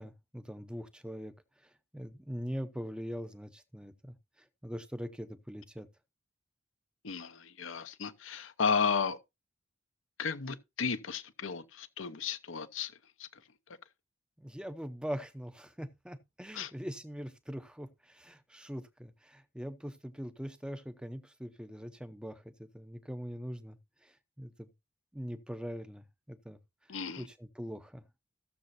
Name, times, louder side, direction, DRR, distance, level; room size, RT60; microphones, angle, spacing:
voice 1, 0.0-1.3 1.9-4.1 4.6-5.9 14.4-22.4 22.7-23.8 24.0-24.7 25.1-26.6 27.2-28.0, equal, 5° right, 0.7 m, -42 dB
voice 2, 7.0-9.2 10.2-12.9 13.2-13.3 16.5-16.7 26.9-27.3, left 5 dB, 80° left, 0.9 m, -33 dB
16.0 x 6.9 x 2.6 m
head